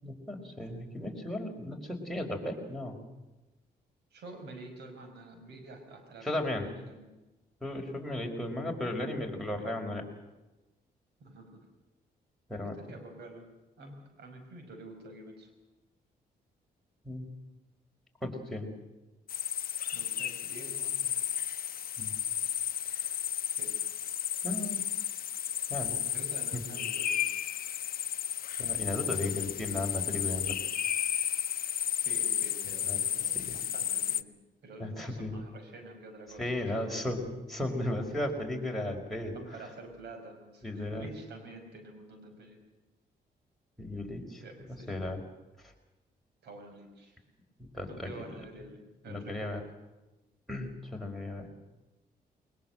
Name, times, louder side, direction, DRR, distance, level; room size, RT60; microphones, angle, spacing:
voice 1, 0.0-3.0 6.2-6.7 7.6-10.1 12.5-12.8 17.1-17.3 18.2-18.7 22.0-22.1 22.9-23.1 24.4-24.8 25.7-26.0 28.6-30.6 32.8-33.1 33.4-33.6 34.8-35.4 36.4-39.4 40.6-41.1 43.8-45.2 47.6-48.1 49.1-49.6 50.5-51.5, left 1 dB, ahead, 0 dB, 5.1 m, -35 dB
voice 2, 4.1-7.2 11.2-11.7 12.7-13.5 13.8-15.5 19.9-21.1 23.6-23.7 26.1-27.3 32.0-34.3 34.6-36.4 36.7-37.2 38.2-38.4 39.3-42.6 44.4-44.9 46.4-47.2 47.9-48.8 49.0-49.5, right 2 dB, 85° right, 6 dB, 5.6 m, -48 dB
sound 1, 19.3-34.2, left 10 dB, 60° left, 0.7 m, -33 dB
21.5 x 20.0 x 7.9 m, 1.1 s
cardioid pair, 80°, 17 cm